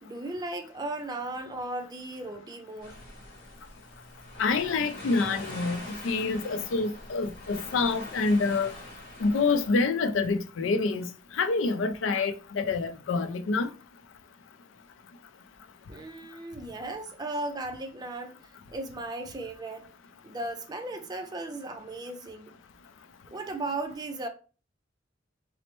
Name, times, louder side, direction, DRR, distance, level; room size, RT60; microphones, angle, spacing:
voice 1, 0.0-3.0 15.9-19.9 20.2-22.6 23.3-24.3, right 2 dB, 20° right, 0.4 m, -36 dB
sound 1, 2.8-9.7, left 1 dB, 50° left, 1.2 m, -43 dB
voice 2, 4.4-8.7 9.2-11.1 11.3-13.7, left 4 dB, 85° left, 0.4 m, -27 dB
4.1 x 2.0 x 2.9 m
head